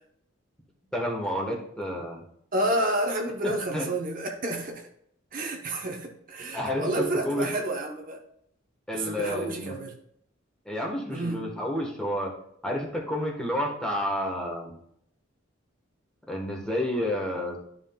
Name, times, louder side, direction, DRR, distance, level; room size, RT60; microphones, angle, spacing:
voice 1, 0.9-2.2 3.4-3.9 6.5-7.5 8.9-9.8 10.6-12.3 12.6-14.8 16.3-17.6, left 1 dB, 5° left, -1 dB, 1.3 m, -30 dB
voice 2, 2.5-4.9 5.3-8.2 8.9-9.9 11.1-11.5, right 1 dB, 45° right, 2 dB, 0.9 m, -30 dB
12.5 x 5.7 x 2.3 m, 0.71 s
head